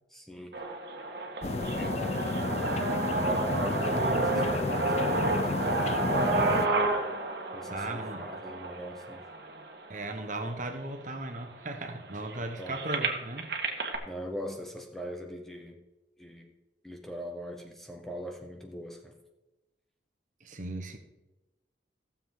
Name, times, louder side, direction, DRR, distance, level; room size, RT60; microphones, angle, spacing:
voice 1, 0.1-0.6 1.7-2.0 2.5-2.7 3.2-6.8 7.5-9.3 12.4-12.8 14.0-15.8 16.2-16.5 16.8-19.1, equal, ahead, 3 dB, 0.8 m, -40 dB
sound 1, 0.5-10.5 11.1-11.2 11.5-14.0, right 3 dB, 60° right, 1.5 m, -31 dB
sound 2, 1.4-6.7, left 3 dB, 35° left, 0.4 m, -31 dB
voice 2, 7.7-8.3 9.9-13.5 20.4-21.0, right 2 dB, 45° right, 6 dB, 1.2 m, -36 dB
15.5 x 7.3 x 3.8 m, 1.0 s
head